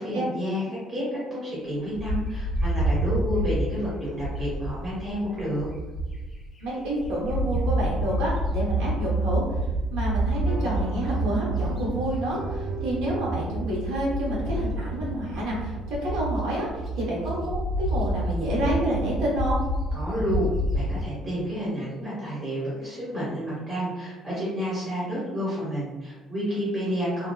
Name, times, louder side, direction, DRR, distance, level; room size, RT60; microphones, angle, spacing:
voice 1, 0.0-5.7 19.9-27.3, equal, 20° right, -8 dB, 1.0 m, -30 dB
Bird, 2.0-6.4 6.8-21.0, right 1 dB, 20° left, 0.6 m, -28 dB
voice 2, 6.6-9.4 9.9-19.6, right 1 dB, 85° right, -5 dB, 1.0 m, -29 dB
sound 1, 10.5-19.2, right 1 dB, 60° right, 0.5 m, -41 dB
2.6 x 2.2 x 2.3 m, 1.1 s
cardioid pair, 145°, 0 cm